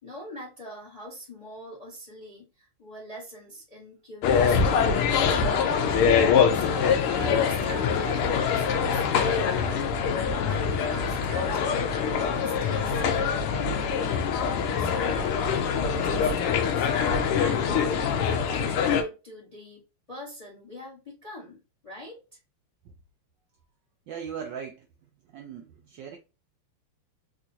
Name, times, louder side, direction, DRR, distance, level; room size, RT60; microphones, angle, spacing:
voice 1, 0.0-6.0 6.5-9.8 10.2-14.1 14.8-18.0 18.5-19.8 20.1-21.6 21.8-22.4, left 1 dB, 20° left, 1.1 m, -41 dB
sound 1, 4.2-19.0, left 6 dB, 85° left, 1.6 m, -24 dB
voice 2, 24.1-24.9 25.3-26.2, right 7 dB, 70° right, 1.1 m, -38 dB
4.3 x 2.4 x 2.7 m
omnidirectional pair, 2.4 m